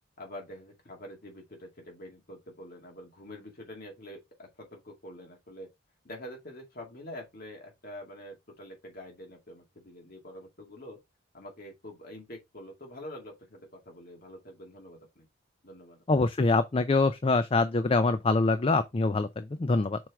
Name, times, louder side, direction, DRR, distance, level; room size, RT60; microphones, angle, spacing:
voice 1, 0.2-5.7 6.0-11.0 11.3-15.3 15.6-16.0, left 1 dB, 50° left, 2.1 m, -46 dB
voice 2, 16.1-20.0, left 3 dB, 30° left, 0.4 m, -25 dB
6.1 x 4.5 x 3.5 m
head